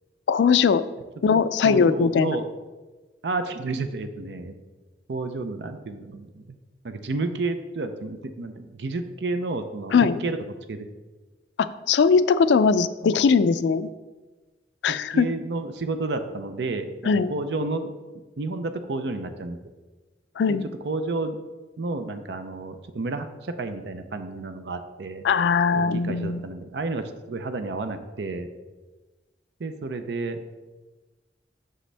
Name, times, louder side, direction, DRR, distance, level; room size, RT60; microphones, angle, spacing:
voice 1, 0.3-0.9 1.2-2.4 9.9-10.2 11.6-13.9 14.8-15.3 17.1-17.3 20.4-20.7 25.2-26.4, left 5 dB, 80° left, 14 dB, 0.4 m, -20 dB
voice 2, 1.6-2.5 3.2-4.5 5.1-6.4 6.8-9.9 10.2-10.4 10.7-10.9 13.0-13.1 15.1-17.9 18.4-19.6 20.5-20.6 20.8-21.4 21.8-25.2 25.7-28.5 29.6-30.4, right 3 dB, 70° right, 8 dB, 0.5 m, -31 dB
7.6 x 6.2 x 3.3 m, 1.2 s
head